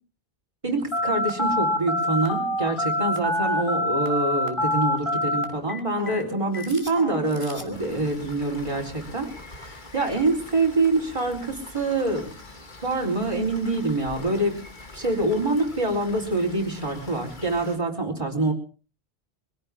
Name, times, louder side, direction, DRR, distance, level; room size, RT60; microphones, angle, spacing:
voice 1, 0.6-12.3 12.8-14.6 14.9-18.5, right 2 dB, 30° right, -1 dB, 4.1 m, -25 dB
Telephone, 0.9-7.8, left 1 dB, 30° left, 3.0 m, -26 dB
Rain, 7.7-17.8, left 2 dB, 50° left, 2.1 m, -44 dB
23.5 x 17.0 x 3.6 m, 0.37 s
omnidirectional pair, 1.0 m